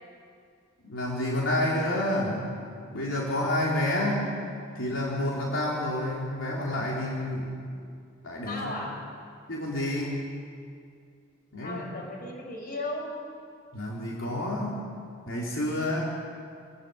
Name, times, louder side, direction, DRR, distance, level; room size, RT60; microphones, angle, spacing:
voice 1, 0.8-2.6 2.9-4.3 4.7-7.7 8.2-8.7 9.5-10.3 11.5-11.8 13.7-14.8 15.3-16.0, left 1 dB, 70° left, -4 dB, 4.0 m, -29 dB
voice 2, 8.5-9.0 11.6-13.2, left 2 dB, 50° left, 0 dB, 5.4 m, -35 dB
26.5 x 19.0 x 7.1 m, 2.3 s
head